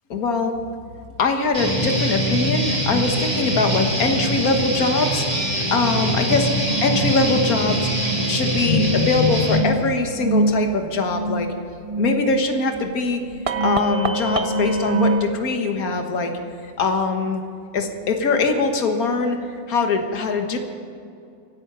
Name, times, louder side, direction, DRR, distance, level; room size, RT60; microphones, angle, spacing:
voice 1, 0.1-0.5 1.2-7.9 8.3-11.5 12.0-13.2 13.6-16.3 16.8-17.4 17.7-20.6, left 3 dB, 65° left, 5 dB, 1.9 m, -22 dB
Guitar, 1.5-9.6, equal, 25° right, 2.9 m, -23 dB
sound 1, 6.7-15.3, right 2 dB, 65° right, 0.3 m, -25 dB
25.5 x 8.8 x 5.6 m, 2.5 s
omnidirectional pair, 1.7 m